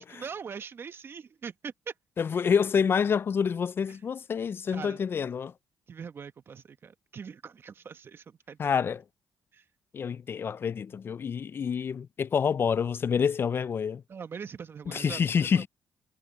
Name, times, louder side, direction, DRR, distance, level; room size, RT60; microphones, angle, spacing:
voice 1, 0.0-1.9 3.9-4.0 4.7-5.0 5.9-8.7 9.5-9.6 14.1-15.7, right 6 dB, 50° right, 1.6 m, -42 dB
voice 2, 2.2-5.5 8.6-9.0 9.9-14.0 14.9-15.7, left 6 dB, 45° left, 0.5 m, -27 dB
supercardioid pair, 60°, 5 cm